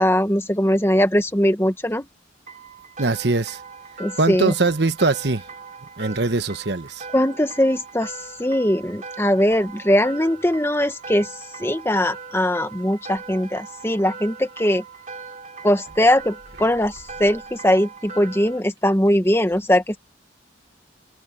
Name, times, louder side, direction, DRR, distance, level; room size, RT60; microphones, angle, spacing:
voice 1, 0.0-2.1 4.0-4.5 7.1-8.1 8.4-11.3 11.6-14.8 15.6-20.0, equal, 15° left, 1.4 m, -20 dB
sound 1, 2.5-18.6, right 4 dB, 40° right, 2.8 m, -40 dB
voice 2, 3.0-3.6 4.2-5.4 6.0-7.0, right 3 dB, 60° right, 1.2 m, -21 dB
head